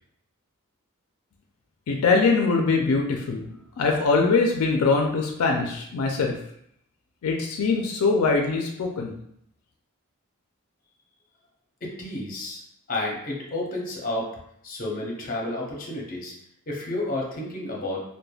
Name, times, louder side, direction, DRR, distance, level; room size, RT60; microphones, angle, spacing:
voice 1, 1.9-3.5 3.8-6.4 7.2-9.2, left 4 dB, 85° left, 2 dB, 0.4 m, -22 dB
voice 2, 11.8-12.6 12.9-14.3 14.6-16.3 16.7-18.0, left 2 dB, 40° left, -2 dB, 0.6 m, -31 dB
3.1 x 2.2 x 2.3 m, 0.72 s
head